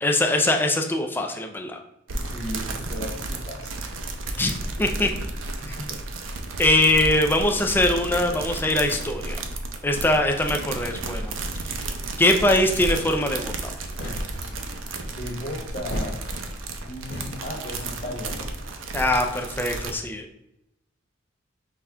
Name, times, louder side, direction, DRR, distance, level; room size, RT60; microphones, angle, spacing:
voice 1, 0.0-1.8 4.4-4.5 4.8-5.1 5.6-5.8 6.6-9.4 9.8-11.4 12.2-13.7 18.9-20.3, left 1 dB, 10° left, 3 dB, 0.4 m, -22 dB
sound 1, 2.1-19.9, right 2 dB, 80° right, 0.6 m, -32 dB
voice 2, 2.2-3.8 5.6-6.0 15.1-16.2 16.8-18.6, left 1 dB, 35° left, 1 dB, 0.8 m, -35 dB
sound 2, 13.8-14.7 15.7-16.7 17.0-17.7, equal, 50° left, 1.3 m, -35 dB
5.7 x 2.4 x 3.3 m, 0.84 s
head